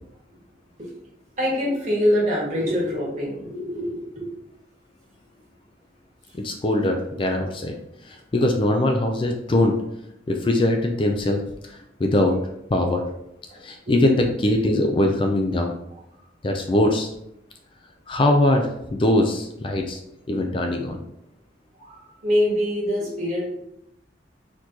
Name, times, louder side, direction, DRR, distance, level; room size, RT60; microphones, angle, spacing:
voice 1, 1.4-4.3 13.9-14.0 21.8-23.4, equal, 40° right, -4 dB, 1.5 m, -24 dB
voice 2, 6.4-7.7 8.0-9.7 10.3-12.4 12.7-13.0 13.6-15.7 16.4-17.1 18.1-20.0 20.3-21.0, left 1 dB, 25° left, 4 dB, 0.4 m, -22 dB
4.3 x 3.0 x 4.0 m, 0.80 s
head